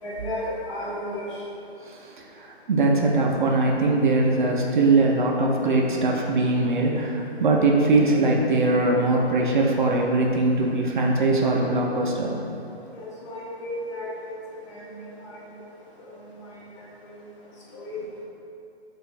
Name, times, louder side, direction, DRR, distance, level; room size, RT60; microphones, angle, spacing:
voice 1, 0.0-1.3 12.9-14.3 14.7-14.9 15.2-15.4 16.1-16.6 17.0-17.2 17.7-18.0, left 1 dB, 30° left, -5 dB, 0.6 m, -34 dB
voice 2, 2.4-12.3, right 2 dB, 50° right, -1 dB, 0.5 m, -21 dB
6.0 x 2.5 x 2.4 m, 2.6 s
figure-of-eight pair, 135°, 33 cm